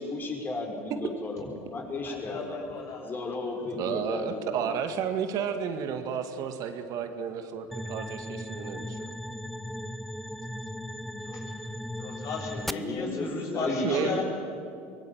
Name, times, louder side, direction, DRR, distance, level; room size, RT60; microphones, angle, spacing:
voice 1, 0.0-2.6 3.0-4.7 12.7-14.2, left 2 dB, 30° left, 2 dB, 6.0 m, -34 dB
voice 2, 2.0-3.1 11.2-11.4 12.0-14.2, left 4 dB, 50° left, 0 dB, 7.4 m, -36 dB
voice 3, 3.8-9.0 13.8-14.2, right 7 dB, 55° right, 7 dB, 2.1 m, -32 dB
sound 1, 7.7-12.7, equal, ahead, 0.8 m, -37 dB
23.5 x 19.5 x 8.9 m, 2.5 s
hypercardioid pair, 90°, 7 cm